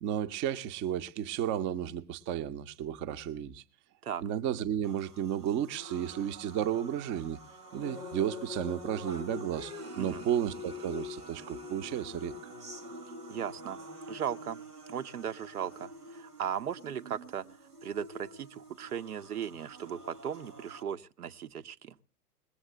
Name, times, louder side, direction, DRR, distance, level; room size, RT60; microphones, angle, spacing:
voice 1, 0.0-3.6 4.2-7.4 7.7-12.3, right 10 dB, 25° right, 0.7 m, -33 dB
sound 1, 4.8-20.8, left 1 dB, 85° right, 2.2 m, -46 dB
voice 2, 13.3-13.8 14.1-14.6 14.9-17.4 17.8-21.9, right 8 dB, 70° right, 1.0 m, -37 dB
20.5 x 7.9 x 7.8 m
figure-of-eight pair, 95°, 46 cm